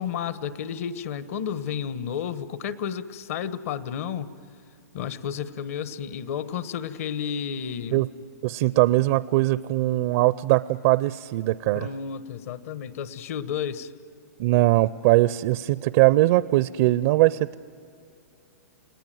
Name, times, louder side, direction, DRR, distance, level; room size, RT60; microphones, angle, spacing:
voice 1, 0.0-4.3 4.9-8.0 11.7-13.9, left 8 dB, 60° left, 14 dB, 1.3 m, -32 dB
voice 2, 8.4-11.9 14.4-17.6, right 18 dB, 50° right, 17 dB, 0.5 m, -21 dB
29.5 x 19.0 x 9.3 m, 2.5 s
hypercardioid pair, 135°, 9 cm